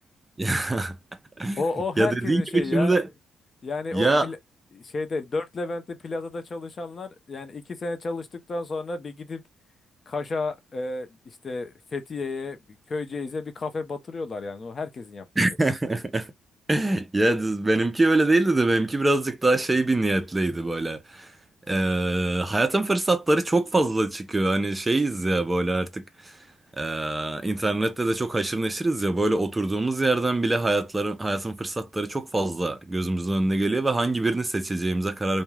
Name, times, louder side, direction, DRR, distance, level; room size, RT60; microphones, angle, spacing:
voice 1, 0.4-1.0 1.4-1.6 2.0-3.1 3.9-4.3 15.4-16.3 16.7-21.3 21.7-26.4 26.7-35.4, right 2 dB, 20° right, 0.4 m, -24 dB
voice 2, 1.6-3.0 3.6-4.4 4.7-9.4 10.1-15.3, left 3 dB, 40° left, 0.6 m, -32 dB
2.3 x 2.1 x 3.1 m
cardioid pair, 90°, 0 cm